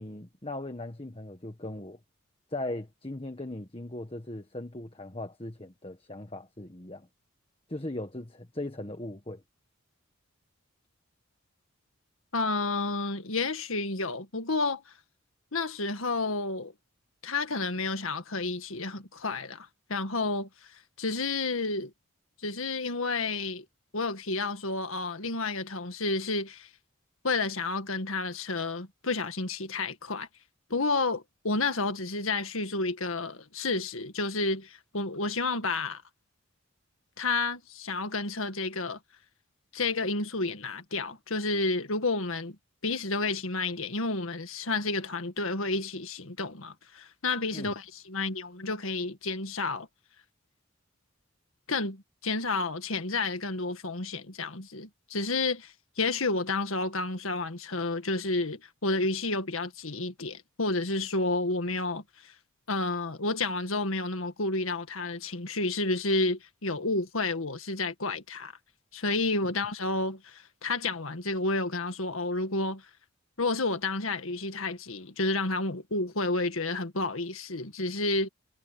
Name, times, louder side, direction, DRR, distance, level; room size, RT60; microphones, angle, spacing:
voice 1, 0.0-2.0 2.5-7.1 7.7-9.4 47.5-47.7, left 1 dB, 25° left, 1.5 m, -38 dB
voice 2, 12.3-14.8 15.5-16.7 17.2-20.5 21.0-21.9 22.4-23.6 23.9-26.7 27.2-30.3 30.7-36.0 37.2-39.0 39.7-42.5 42.8-49.9 51.7-62.3 62.7-68.5 68.9-72.8 73.4-78.3, left 3 dB, 75° left, 1.8 m, -30 dB
head